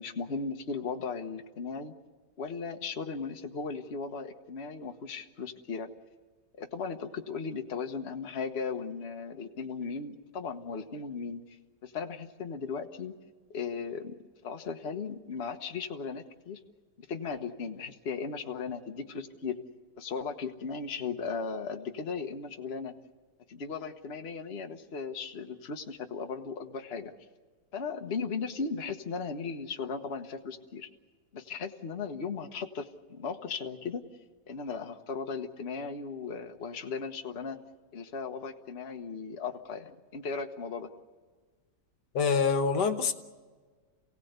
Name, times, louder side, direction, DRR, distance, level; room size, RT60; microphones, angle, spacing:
voice 1, 0.0-1.9 2.4-5.9 6.6-11.6 11.8-13.1 13.5-14.1 14.4-16.6 17.0-19.6 20.0-22.9 23.5-27.1 27.7-30.9 31.3-34.0 34.5-37.6 37.9-40.9, left 5 dB, 40° left, 1.4 m, -37 dB
voice 2, 42.1-43.1, left 5 dB, 75° left, 1.7 m, -25 dB
28.0 x 17.5 x 8.1 m
omnidirectional pair, 1.9 m